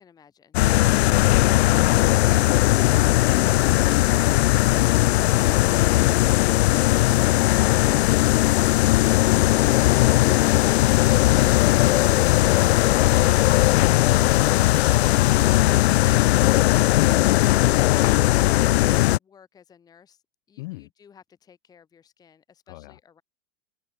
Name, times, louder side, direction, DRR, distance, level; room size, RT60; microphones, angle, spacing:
voice 1, 0.0-1.5 8.2-13.6 15.6-17.3 17.7-18.9 19.2-20.2 20.5-23.2, left 7 dB, 10° left, 2.4 m, -53 dB
sound 1, 0.5-19.2, left 16 dB, 65° left, 0.5 m, -18 dB
voice 2, 0.8-7.8 20.6-20.9 22.7-23.0, left 22 dB, 40° left, 4.9 m, -37 dB
sound 2, 9.0-18.4, right 5 dB, 10° right, 6.9 m, -53 dB
supercardioid pair, 175°, 34 cm